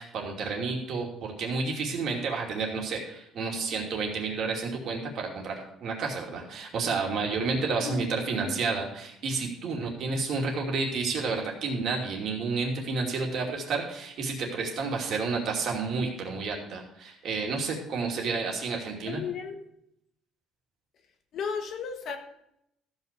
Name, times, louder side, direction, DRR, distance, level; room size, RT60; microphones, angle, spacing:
voice 1, 0.0-19.2, right 4 dB, 50° right, 0 dB, 2.6 m, -30 dB
voice 2, 19.1-19.6 21.3-22.2, left 6 dB, 45° left, 6 dB, 1.4 m, -34 dB
14.0 x 5.6 x 6.8 m, 0.76 s
cardioid pair, 160°, 0 cm